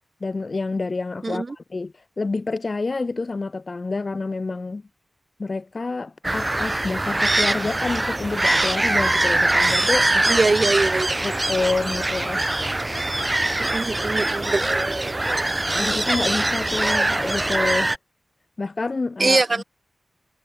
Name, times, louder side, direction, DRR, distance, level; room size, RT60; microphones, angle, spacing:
voice 1, 0.2-4.8 5.4-10.3 11.2-12.5 15.7-17.9 18.6-19.6, left 3 dB, 50° left, 2.9 m, -28 dB
voice 2, 1.2-1.6 10.3-11.2 13.6-15.5 19.2-19.6, right 3 dB, 45° right, 1.7 m, -23 dB
sound 1, 6.2-18.0, right 2 dB, 25° right, 5.0 m, -23 dB
cardioid pair, 55°, 0 cm